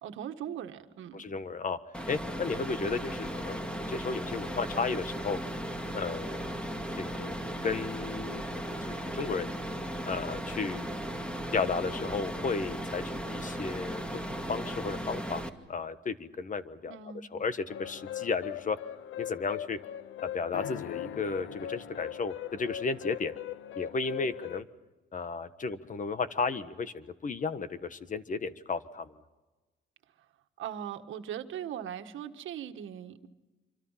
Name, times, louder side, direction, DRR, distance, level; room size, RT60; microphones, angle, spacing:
voice 1, 0.0-1.4 16.9-17.3 30.6-33.3, right 9 dB, 80° right, 7 dB, 1.6 m, -39 dB
voice 2, 1.1-1.8 2.1-5.4 5.9-6.6 7.0-8.4 8.9-9.5 10.0-11.0 11.5-14.0 14.3-15.4 15.7-17.0 17.3-18.8 19.2-19.8 20.2-23.3 23.7-24.6 25.1-29.1, left 4 dB, 40° left, 12 dB, 1.4 m, -34 dB
sound 1, 1.9-15.5, equal, 5° left, 2.2 m, -36 dB
sound 2, 17.7-24.6, left 11 dB, 75° left, 0.8 m, -40 dB
27.0 x 25.0 x 5.8 m, 1.2 s
cardioid pair, 90°, 20 cm